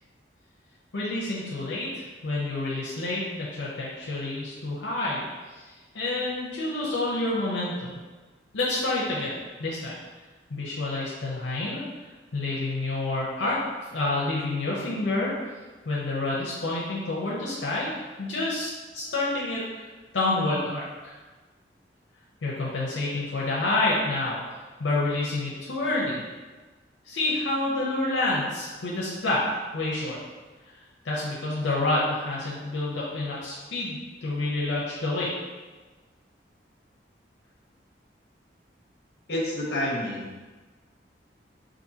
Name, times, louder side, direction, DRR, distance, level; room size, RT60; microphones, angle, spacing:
voice 1, 0.9-5.2 5.5-5.6 5.9-7.9 8.5-9.3 9.6-9.9 10.5-11.8 12.3-13.6 13.8-15.6 15.9-17.9 18.2-19.9 20.1-21.2 22.4-26.2 27.1-29.4 29.7-30.2 31.0-35.3, left 2 dB, 80° left, -5 dB, 0.7 m, -28 dB
voice 2, 39.3-40.5, left 1 dB, 60° left, -3 dB, 1.0 m, -29 dB
5.0 x 2.6 x 2.7 m, 1.3 s
head